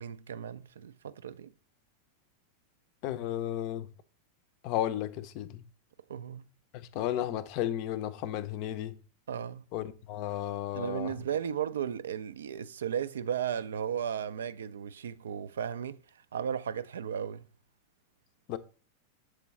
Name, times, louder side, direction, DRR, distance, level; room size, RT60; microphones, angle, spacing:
voice 1, 0.0-1.5 6.1-6.4 9.3-9.6 10.7-16.0 16.3-17.5, right 8 dB, 65° right, 0.3 m, -35 dB
voice 2, 3.0-3.9 4.6-5.6 6.9-9.0 9.7-11.1 18.5-18.6, left 12 dB, 45° left, 0.5 m, -33 dB
7.6 x 3.7 x 4.1 m
figure-of-eight pair, 90°, 0 cm